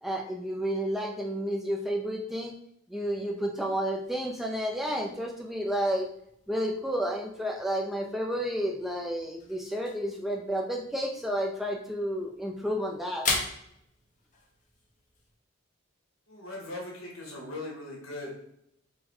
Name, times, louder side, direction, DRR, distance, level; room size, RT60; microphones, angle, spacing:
voice 1, 0.0-2.6 2.9-6.1 6.5-13.3, equal, ahead, 1 dB, 0.4 m, -31 dB
sound 1, 3.9-15.3, left 3 dB, 35° left, 0.8 m, -41 dB
voice 2, 16.3-18.4, left 2 dB, 75° left, -2 dB, 1.5 m, -39 dB
3.9 x 2.2 x 4.3 m, 0.76 s
head